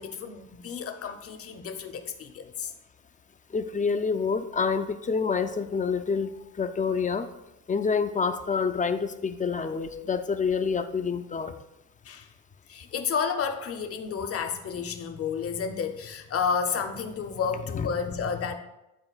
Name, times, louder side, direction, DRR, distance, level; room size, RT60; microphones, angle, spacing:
voice 1, 0.0-2.7 12.0-12.3 12.7-18.5, left 6 dB, 50° left, 6 dB, 0.8 m, -31 dB
voice 2, 3.5-7.3 7.7-11.5 17.7-17.9, left 5 dB, 25° left, 9 dB, 0.4 m, -27 dB
11.0 x 3.7 x 2.4 m, 0.94 s
cardioid pair, 90°, 30 cm